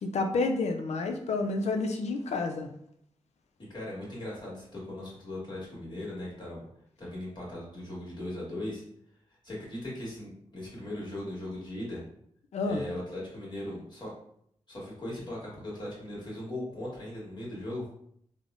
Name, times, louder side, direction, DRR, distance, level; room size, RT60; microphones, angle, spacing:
voice 1, 0.0-2.7 12.5-12.8, left 3 dB, 70° left, 6 dB, 0.4 m, -29 dB
voice 2, 3.7-6.7 7.0-8.8 9.4-12.0 12.6-14.1 14.7-17.8, left 1 dB, 40° left, -5 dB, 1.4 m, -38 dB
3.3 x 2.1 x 2.4 m, 0.69 s
cardioid pair, 65°, 12 cm